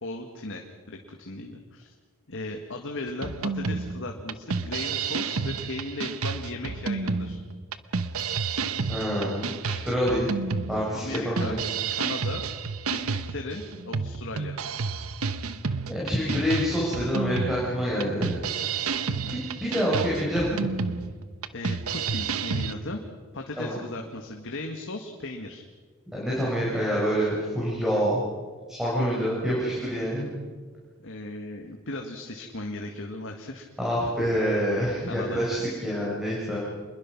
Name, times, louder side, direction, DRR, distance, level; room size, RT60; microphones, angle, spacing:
voice 1, 0.0-1.9 2.3-7.4 10.9-11.6 11.9-12.4 12.9-14.6 19.1-19.5 21.5-23.0 23.3-25.6 29.2-29.3 31.0-33.7 35.1-35.4, left 2 dB, 60° left, 3 dB, 1.8 m, -37 dB
sound 1, 3.2-22.7, right 5 dB, 75° right, 1.0 m, -30 dB
voice 2, 8.9-10.3 10.7-11.6 15.9-18.3 19.1-20.7 23.6-23.8 26.1-28.2 28.7-30.2 33.8-36.6, equal, ahead, -6 dB, 5.5 m, -27 dB
26.0 x 21.5 x 6.0 m, 1.5 s
head